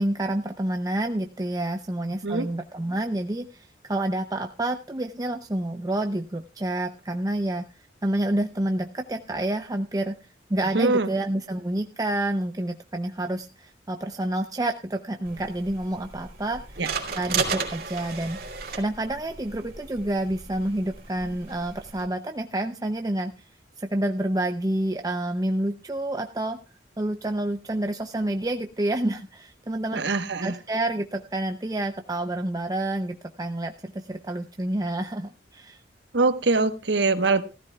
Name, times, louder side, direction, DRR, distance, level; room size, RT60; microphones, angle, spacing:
voice 1, 0.0-16.8 17.1-18.4 18.7-23.3 23.8-26.6 27.0-30.0 30.4-35.8, right 1 dB, 20° right, 6 dB, 0.6 m, -28 dB
voice 2, 10.7-11.1 16.8-16.9 29.9-30.5 36.1-37.4, right 3 dB, 70° right, 10 dB, 1.1 m, -23 dB
sound 1, 15.2-22.1, right 4 dB, 55° right, 2.7 m, -34 dB
15.5 x 14.5 x 2.3 m, 0.31 s
head